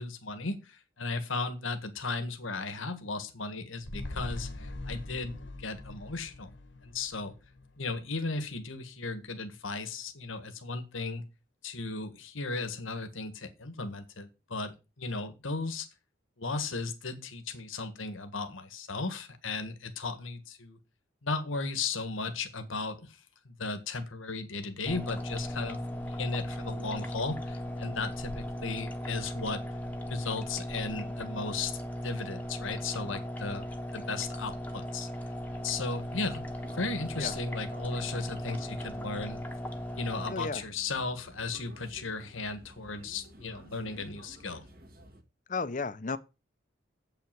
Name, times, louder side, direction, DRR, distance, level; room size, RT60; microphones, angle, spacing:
voice 1, 0.0-6.5 6.8-7.3 7.8-11.2 11.6-15.9 16.4-20.8 21.2-23.2 23.5-29.6 30.1-33.6 33.9-35.1 35.5-39.4 39.9-44.6, left 3 dB, 85° left, 1.7 m, -36 dB
sound 1, 3.8-8.3 8.7-8.8, left 2 dB, 70° left, 1.4 m, -42 dB
sound 2, 24.9-40.3, equal, 10° left, 1.1 m, -37 dB
sound 3, 35.6-45.2, right 1 dB, 45° right, 1.9 m, -53 dB
voice 2, 40.3-40.6 45.5-46.2, left 4 dB, 40° left, 0.7 m, -33 dB
8.2 x 5.9 x 7.5 m
head